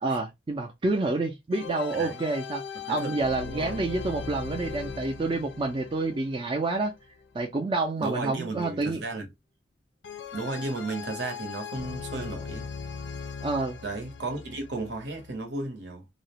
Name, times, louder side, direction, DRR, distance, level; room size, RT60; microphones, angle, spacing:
voice 1, 0.0-2.6 2.9-6.9 7.3-9.0 13.4-13.8, right 3 dB, 25° right, 0.4 m, -28 dB
sound 1, 1.5-7.6 10.0-15.5, left 6 dB, 70° left, 0.4 m, -39 dB
voice 2, 1.9-2.2 2.7-3.8 8.0-9.3 10.3-12.7 13.8-16.0, right 2 dB, 70° right, 0.8 m, -34 dB
2.4 x 2.0 x 2.8 m
head